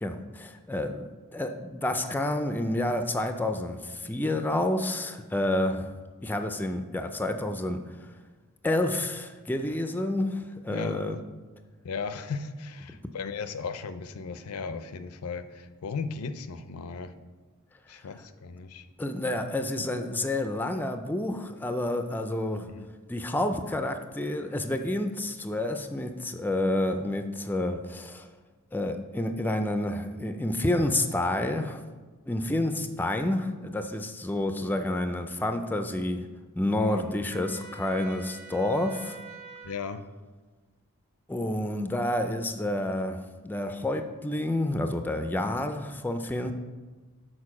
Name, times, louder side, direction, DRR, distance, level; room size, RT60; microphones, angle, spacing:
voice 1, 0.0-5.9 6.2-7.8 8.6-11.2 19.0-22.7 23.1-28.3 28.7-31.8 32.3-36.3 36.6-39.2 41.3-46.5, left 1 dB, 10° left, 7 dB, 0.4 m, -29 dB
voice 2, 11.8-17.1 17.9-18.9 22.6-22.9 36.7-37.1 39.6-40.0, left 5 dB, 75° left, 11 dB, 0.5 m, -36 dB
Trumpet, 37.3-39.8, right 4 dB, 50° right, 1.1 m, -45 dB
6.6 x 4.4 x 5.9 m, 1.3 s
head